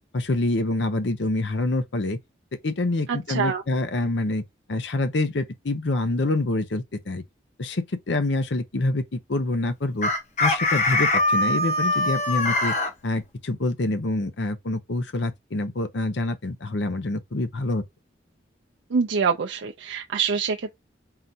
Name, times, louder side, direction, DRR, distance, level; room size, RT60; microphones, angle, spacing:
voice 1, 0.1-2.2 2.6-4.4 4.7-7.2 7.6-10.1 10.4-12.7 13.0-17.8, left 2 dB, 75° left, 0.7 m, -26 dB
voice 2, 3.1-3.6 18.9-20.7, right 5 dB, 80° right, 0.4 m, -25 dB
Chicken rooster, 10.0-12.9, left 2 dB, 40° left, 0.7 m, -22 dB
4.3 x 3.9 x 2.7 m
head